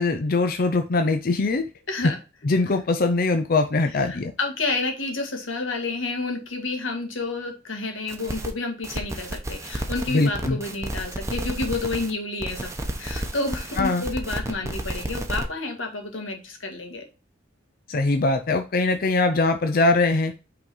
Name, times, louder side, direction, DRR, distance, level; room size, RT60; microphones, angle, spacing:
voice 1, 0.0-1.7 2.4-4.3 10.1-10.6 13.8-14.0 17.9-20.3, left 3 dB, 50° left, 7 dB, 0.5 m, -22 dB
voice 2, 1.9-2.2 3.9-12.7 13.0-17.0, left 3 dB, 85° left, 3 dB, 1.8 m, -30 dB
sound 1, 8.1-8.5 8.8-12.1 12.4-15.4, right 1 dB, 15° right, 0.9 m, -31 dB
5.7 x 3.8 x 5.4 m, 0.31 s
head